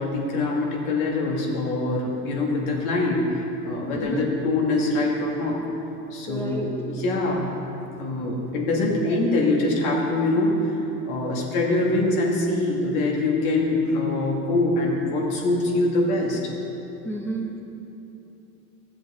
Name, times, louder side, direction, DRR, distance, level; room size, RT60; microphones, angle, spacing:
voice 1, 0.0-5.6 6.1-7.5 8.0-16.5, left 2 dB, 75° left, -2 dB, 2.3 m, -24 dB
voice 2, 3.9-4.3 6.3-6.7 17.0-17.6, right 2 dB, 5° left, -1 dB, 1.2 m, -31 dB
14.0 x 7.6 x 3.8 m, 3.0 s
hypercardioid pair, 85°, 44 cm